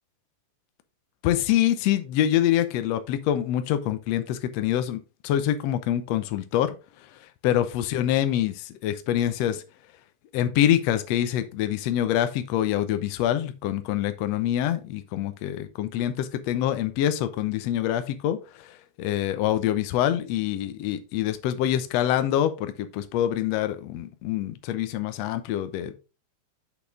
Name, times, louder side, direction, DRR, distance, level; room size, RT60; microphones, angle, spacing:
voice 1, 1.2-6.7 7.1-9.6 10.3-25.9, left 11 dB, 70° left, 1.6 m, -25 dB
6.3 x 5.9 x 3.7 m
omnidirectional pair, 3.6 m